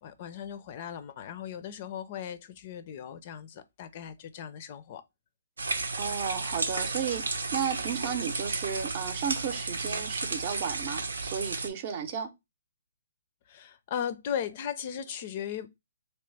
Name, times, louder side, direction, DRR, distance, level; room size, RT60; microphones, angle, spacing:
voice 1, 0.0-5.0 13.5-15.7, left 9 dB, 40° left, 0.5 m, -37 dB
sound 1, 5.6-11.7, right 3 dB, 85° right, 0.7 m, -33 dB
voice 2, 6.0-12.3, right 7 dB, 40° right, 0.7 m, -33 dB
3.1 x 2.9 x 3.3 m
hypercardioid pair, 145°, 0 cm